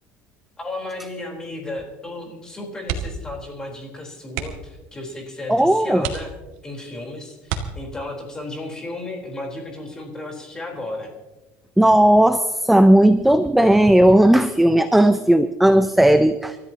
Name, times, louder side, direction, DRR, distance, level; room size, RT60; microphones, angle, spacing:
voice 1, 0.6-6.3 6.6-11.1, left 2 dB, 15° left, 0 dB, 4.0 m, -34 dB
sound 1, 2.8-3.3 3.6-3.8 4.3-4.8 5.4-5.5 6.0-6.7 7.4-8.2 9.8-10.1 10.5-10.6, right 8 dB, 70° right, 2.1 m, -31 dB
voice 2, 5.5-6.1 11.8-16.6, right 1 dB, 5° right, 10 dB, 0.5 m, -15 dB
29.0 x 14.0 x 2.9 m, 1.1 s
cardioid pair, 155°, 5 cm